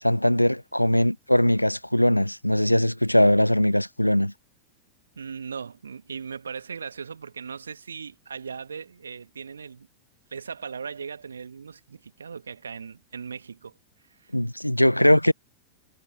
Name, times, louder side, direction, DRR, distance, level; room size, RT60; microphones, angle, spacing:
voice 1, 0.0-4.3 14.3-15.3, left 1 dB, 90° left, 0.5 m, -21 dB
voice 2, 5.2-9.9 10.3-13.7 14.2-14.3, right 6 dB, 70° right, 3.0 m, -38 dB
figure-of-eight pair, 90°, 0 cm